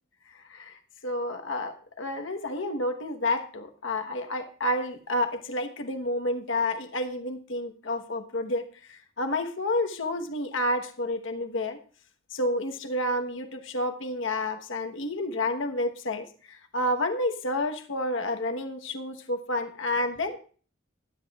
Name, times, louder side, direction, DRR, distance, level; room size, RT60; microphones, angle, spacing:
voice 1, 0.3-0.8 1.0-11.8 12.3-20.4, left 1 dB, 70° left, 5 dB, 1.1 m, -30 dB
20.5 x 10.0 x 2.4 m, 0.41 s
head